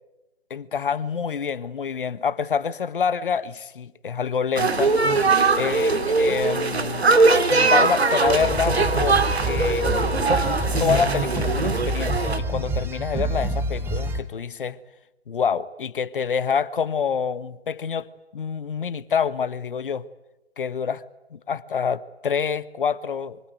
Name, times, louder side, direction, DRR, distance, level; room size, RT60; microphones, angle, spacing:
voice 1, 0.5-4.9 5.6-7.1 7.5-9.9 10.8-14.8 15.3-18.1 18.3-20.0 20.6-21.0 21.3-23.4, left 6 dB, 55° left, 1.3 m, -27 dB
sound 1, 4.6-12.4, right 3 dB, 70° right, 2.7 m, -21 dB
sound 2, 8.2-14.2, right 1 dB, 5° right, 1.1 m, -27 dB
25.0 x 24.0 x 9.3 m
figure-of-eight pair, 135°, 32 cm